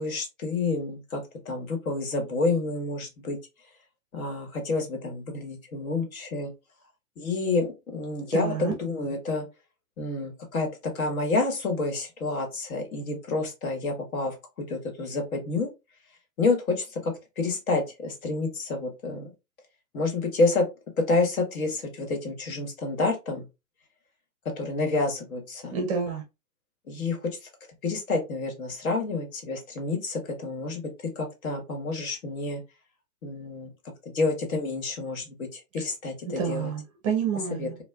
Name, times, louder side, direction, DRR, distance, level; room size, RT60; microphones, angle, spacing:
voice 1, 0.0-3.4 4.1-6.5 7.2-9.4 10.0-14.4 14.7-15.7 16.4-19.3 19.9-20.6 21.1-23.4 24.6-25.7 26.9-27.2 27.8-30.9 31.2-32.6 33.2-33.7 34.0-36.7 37.6-37.7, left 3 dB, 65° left, 1.3 m, -29 dB
voice 2, 8.3-8.7 25.7-26.2 36.2-37.8, right 6 dB, 25° right, 0.5 m, -28 dB
4.1 x 2.2 x 2.2 m
hypercardioid pair, 140°, 45 cm